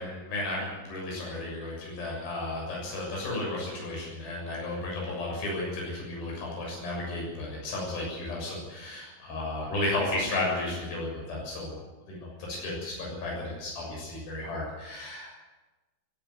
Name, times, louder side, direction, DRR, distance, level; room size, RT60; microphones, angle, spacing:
voice 1, 0.0-11.8 12.1-15.3, left 2 dB, 75° left, -3 dB, 8.9 m, -33 dB
18.5 x 16.5 x 9.4 m, 1.1 s
omnidirectional pair, 4.3 m